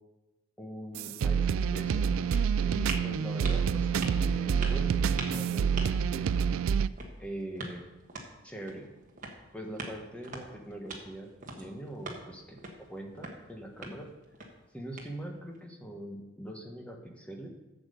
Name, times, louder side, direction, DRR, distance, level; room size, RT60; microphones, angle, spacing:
voice 1, 0.6-2.1 2.6-5.0 5.3-6.3 7.2-7.8 8.4-8.9 9.5-11.3 11.5-12.6 12.9-14.1 14.7-17.5, right 1 dB, 5° left, 1 dB, 1.2 m, -42 dB
sound 1, 1.0-6.9, right 6 dB, 80° right, 0.3 m, -27 dB
sound 2, 1.6-15.6, right 2 dB, 40° right, 1.4 m, -45 dB
8.0 x 7.2 x 6.8 m, 1.0 s
head